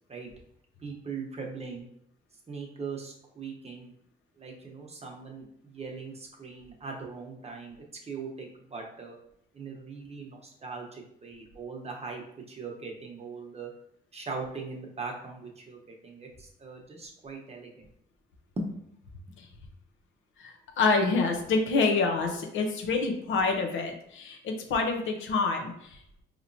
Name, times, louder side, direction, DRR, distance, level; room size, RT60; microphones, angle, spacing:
voice 1, 0.8-1.9 2.5-3.9 4.4-7.8 8.0-9.2 9.5-12.2 12.5-13.7 14.1-17.9 18.6-18.7, right 4 dB, 30° right, 0 dB, 0.9 m, -40 dB
voice 2, 20.4-26.0, left 4 dB, 80° left, 3 dB, 0.8 m, -27 dB
4.2 x 3.0 x 2.7 m, 0.73 s
cardioid pair, 90°, 20 cm